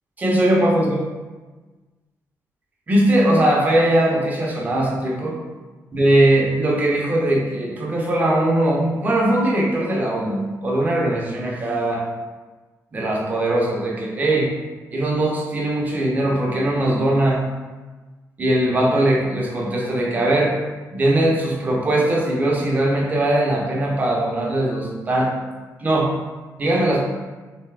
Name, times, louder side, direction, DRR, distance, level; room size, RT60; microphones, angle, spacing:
voice 1, 0.2-1.0 2.9-5.4 5.9-12.0 12.9-14.5 14.9-17.4 18.4-20.6 20.9-25.3 25.8-26.1 26.6-27.0, right 1 dB, 25° right, -2 dB, 0.6 m, -20 dB
3.3 x 2.7 x 3.3 m, 1.3 s
wide cardioid pair, 165°, 6 cm